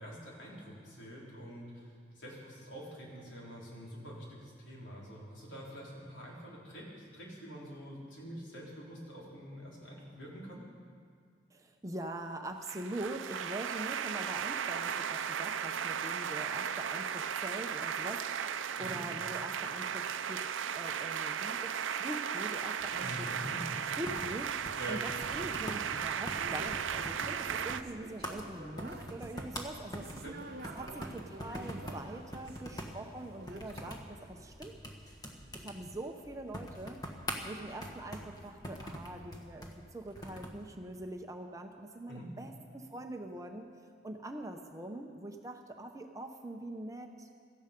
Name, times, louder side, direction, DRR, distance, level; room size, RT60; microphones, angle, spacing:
voice 1, 0.0-10.6 18.8-19.0 22.9-23.6 24.8-25.0 30.2-30.4 42.1-42.3, right 1 dB, 75° left, -4 dB, 4.1 m, -46 dB
voice 2, 11.5-20.5 20.7-23.3 24.0-24.6 24.9-30.1 30.8-35.0 35.5-37.0 37.4-43.7 44.0-47.3, right 1 dB, 15° right, 4 dB, 0.7 m, -43 dB
sound 1, 12.6-27.8, right 8 dB, 85° right, 0.5 m, -36 dB
sound 2, 22.8-40.6, equal, 20° left, 1.2 m, -45 dB
sound 3, 26.3-34.0, right 3 dB, 55° right, 0.8 m, -50 dB
17.0 x 13.5 x 5.3 m, 2.1 s
head